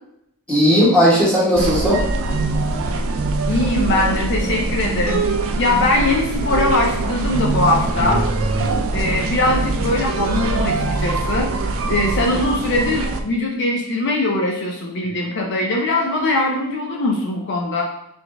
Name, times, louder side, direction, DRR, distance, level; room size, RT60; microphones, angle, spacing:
voice 1, 0.5-2.0 8.0-9.1, equal, 5° left, -7 dB, 1.5 m, -17 dB
sound 1, 1.5-13.2, right 3 dB, 65° right, 0.5 m, -23 dB
voice 2, 3.5-5.2 5.5-8.2 8.9-11.5 11.9-17.8, left 2 dB, 55° left, 0 dB, 0.6 m, -21 dB
4.1 x 3.3 x 3.4 m, 0.77 s
head